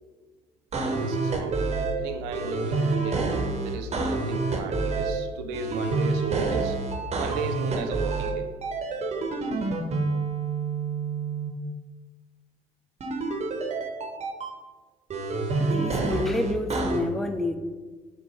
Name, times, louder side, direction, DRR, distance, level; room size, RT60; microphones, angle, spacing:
sound 1, 0.7-1.9 2.3-5.1 5.5-8.3 8.6-11.5 13.0-14.5 15.1-17.0, right 3 dB, 40° right, 0.7 m, -28 dB
voice 1, 0.8-1.7 2.0-3.2 3.6-6.8 7.2-8.5 9.0-9.6 9.9-10.0, right 4 dB, 80° right, 0.4 m, -35 dB
sound 2, 1.4-10.1, left 4 dB, 65° left, 0.4 m, -47 dB
voice 2, 15.6-17.6, left 2 dB, ahead, 0.3 m, -28 dB
4.0 x 2.2 x 4.4 m
supercardioid pair, 65°, 17 cm